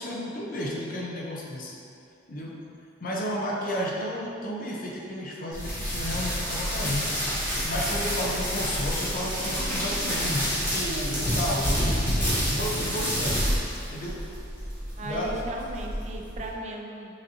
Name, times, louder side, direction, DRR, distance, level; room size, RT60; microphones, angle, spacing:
voice 1, 0.0-1.7 2.3-2.6 3.0-7.4 7.6-12.1 12.5-13.6 13.9-14.3 15.0-15.5, equal, 45° left, -3 dB, 0.5 m, -32 dB
sound 1, 5.5-16.5, equal, 15° left, 1.1 m, -28 dB
voice 2, 15.0-17.1, right 2 dB, 35° right, 0 dB, 0.3 m, -36 dB
5.7 x 2.6 x 2.8 m, 2.6 s
head